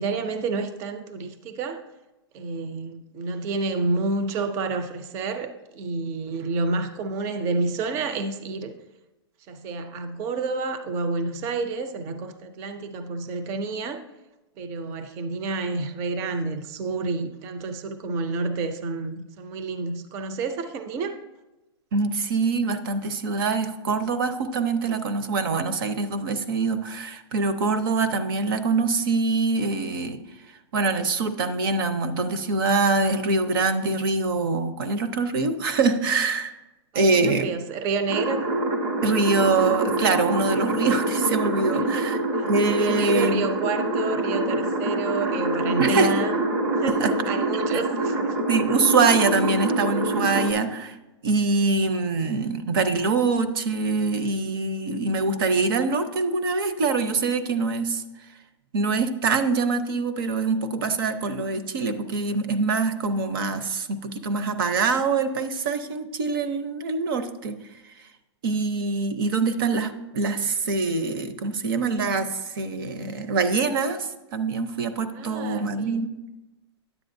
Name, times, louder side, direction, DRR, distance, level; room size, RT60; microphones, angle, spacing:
voice 1, 0.0-1.8 2.3-8.7 9.5-14.0 14.6-21.2 36.9-38.4 41.6-42.1 42.3-42.4 42.8-46.3 46.6-48.4 75.2-76.0, right 3 dB, 20° right, 0.4 m, -29 dB
voice 2, 21.9-30.2 30.7-36.5 36.9-37.5 39.0-42.2 42.5-43.4 45.8-46.1 46.9-47.1 47.5-47.8 48.5-51.0 51.2-58.0 58.7-67.6 68.4-76.2, right 4 dB, 55° right, 0.7 m, -24 dB
sound 1, 38.1-50.5, right 2 dB, 75° right, 1.6 m, -25 dB
9.8 x 7.9 x 2.6 m
hypercardioid pair, 165°, 14 cm